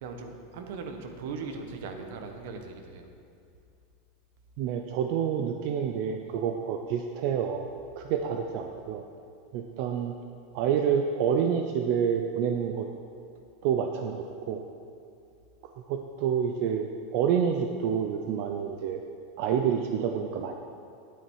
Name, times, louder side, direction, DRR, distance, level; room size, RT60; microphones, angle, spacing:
voice 1, 0.0-3.1, right 4 dB, 60° right, 5 dB, 1.2 m, -39 dB
voice 2, 4.6-7.7 8.0-9.0 9.5-10.1 10.5-12.9 13.6-14.6 15.9-19.0 19.4-20.5, right 7 dB, 45° right, 5 dB, 0.5 m, -28 dB
10.0 x 9.0 x 4.7 m, 2.5 s
supercardioid pair, 170°, 0 cm